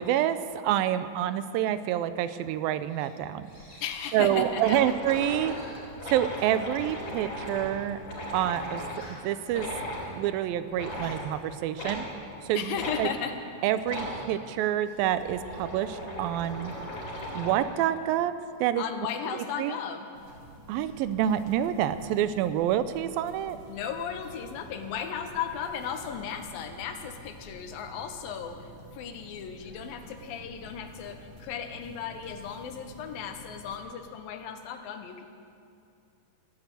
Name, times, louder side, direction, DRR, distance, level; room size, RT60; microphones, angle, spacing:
voice 1, 0.0-3.5 4.1-5.5 6.1-8.0 8.3-8.8 9.2-9.7 10.1-12.1 12.5-13.1 13.6-16.7 17.3-18.8 19.3-19.8 20.7-23.6, right 11 dB, 85° right, 13 dB, 2.4 m, -27 dB
sound 1, 2.2-2.4 2.7-3.1 3.4-4.3 5.1-6.6 7.4-7.9 8.2-8.3 8.7-9.4 9.9-10.2 10.7-11.2 11.7-11.9 12.6-13.2 13.9-14.3 14.8-15.8 16.3-17.2 19.0-20.5 20.7-21.4, left 1 dB, 20° left, 2.9 m, -52 dB
sound 2, 3.5-3.6 3.9-4.0 4.2-9.0 9.5-10.1 10.7-11.2 11.8-12.0 12.7-13.0 13.8-14.2 14.9-17.7, left 1 dB, 50° left, 5.1 m, -37 dB
voice 2, 3.8-4.8 12.5-13.4 18.8-20.1 23.7-35.2, left 7 dB, 75° left, 6 dB, 2.8 m, -36 dB
sound 3, 20.1-33.8, right 1 dB, 45° right, 2.6 m, -49 dB
14.0 x 12.5 x 8.2 m, 2.5 s
omnidirectional pair, 4.2 m